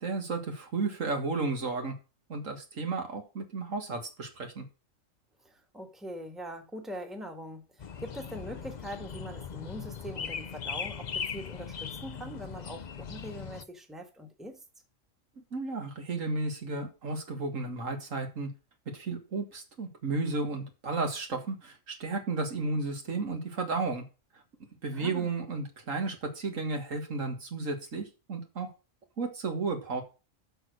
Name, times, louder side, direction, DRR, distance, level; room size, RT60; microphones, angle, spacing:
voice 1, 0.0-1.9 2.3-4.6 15.4-18.5 18.9-24.0 24.8-28.7 29.2-30.0, right 3 dB, 75° right, 2.2 m, -33 dB
voice 2, 5.4-14.6 24.9-25.3, equal, ahead, 1.5 m, -42 dB
sound 1, 7.8-13.6, left 7 dB, 45° left, 0.6 m, -39 dB
7.9 x 6.3 x 6.3 m
omnidirectional pair, 1.4 m